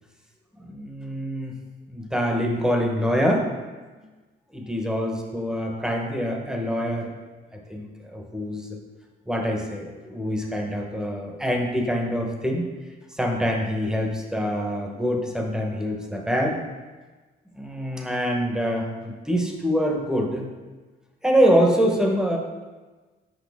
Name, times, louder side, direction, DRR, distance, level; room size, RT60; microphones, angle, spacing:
voice 1, 0.6-1.6 1.9-3.5 4.5-7.1 7.7-8.7 9.3-12.6 13.2-16.6 17.6-20.5 21.2-22.4, equal, 5° right, 1 dB, 1.0 m, -25 dB
6.4 x 5.3 x 3.6 m, 1.3 s
cardioid pair, 90°, 20 cm